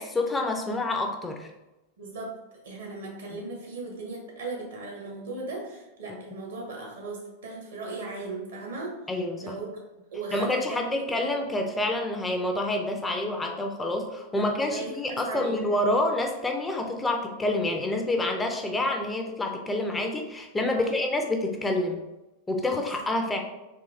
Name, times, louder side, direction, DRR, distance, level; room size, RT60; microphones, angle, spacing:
voice 1, 0.0-1.5 9.1-9.5 10.3-22.0 22.5-23.4, left 1 dB, 10° left, 3 dB, 0.4 m, -28 dB
voice 2, 2.0-2.4 2.6-9.0 9.4-9.7 10.1-11.3 14.4-15.6 20.7-20.9 22.8-23.0, right 3 dB, 65° right, -1 dB, 1.1 m, -37 dB
3.6 x 2.8 x 2.6 m, 0.99 s
figure-of-eight pair, 90°, 0 cm